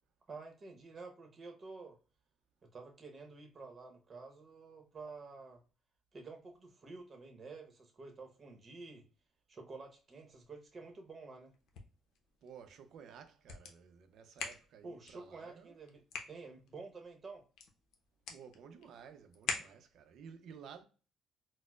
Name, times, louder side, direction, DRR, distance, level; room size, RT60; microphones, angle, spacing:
voice 1, 0.3-2.0 2.6-5.6 6.1-9.0 9.5-11.5 14.8-16.0 16.3-17.4, right 3 dB, 35° right, 0.9 m, -50 dB
sound 1, 11.5-20.2, left 5 dB, 75° left, 0.6 m, -47 dB
voice 2, 12.4-15.8 18.3-20.8, right 7 dB, 65° right, 0.5 m, -54 dB
4.3 x 2.0 x 2.3 m
cardioid pair, 115°, 0 cm